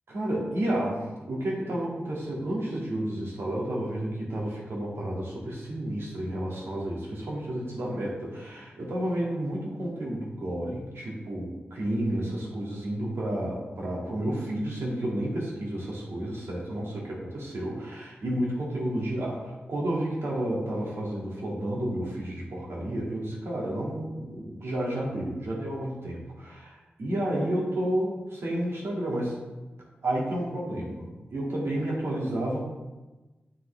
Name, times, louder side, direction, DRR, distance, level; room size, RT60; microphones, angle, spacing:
voice 1, 0.1-29.4 30.0-32.7, right 1 dB, 75° right, -4 dB, 2.1 m, -31 dB
11.0 x 3.9 x 3.4 m, 1.1 s
cardioid pair, 55°, 4 cm